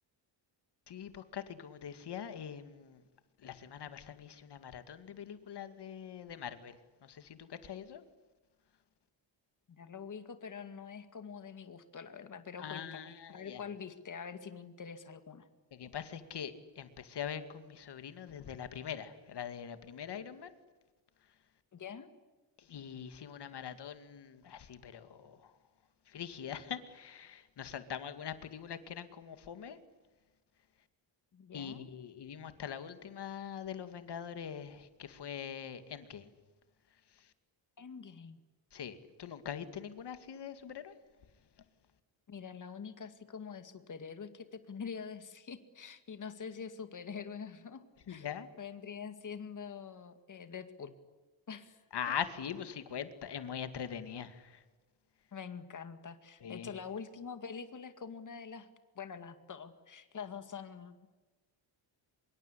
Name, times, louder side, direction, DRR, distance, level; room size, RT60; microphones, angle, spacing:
voice 1, 0.9-3.0 3.4-8.0 12.6-13.6 15.7-20.5 22.6-25.5 26.1-29.8 31.5-36.3 37.1-37.3 38.7-40.9 48.1-48.5 51.9-54.6 56.4-56.7, left 8 dB, 60° left, 10 dB, 2.3 m, -43 dB
voice 2, 9.7-15.5 21.7-22.1 31.3-31.8 37.8-38.4 42.3-48.3 48.6-50.9 51.5-51.8 55.3-58.7 59.0-61.0, left 6 dB, 40° left, 10 dB, 2.2 m, -45 dB
25.5 x 23.0 x 9.9 m, 1.2 s
wide cardioid pair, 180°, 45 cm